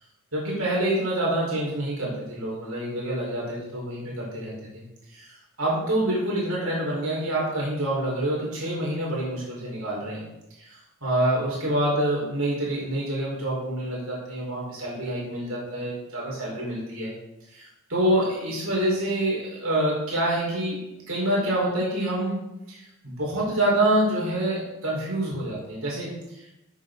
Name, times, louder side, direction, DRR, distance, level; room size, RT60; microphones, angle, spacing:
voice 1, 0.3-4.8 5.1-10.3 10.6-10.7 11.0-17.1 17.5-17.6 17.9-20.8 21.1-22.4 22.7-26.6, right 1 dB, 80° right, -4 dB, 4.9 m, -27 dB
13.5 x 8.6 x 4.1 m, 0.92 s
head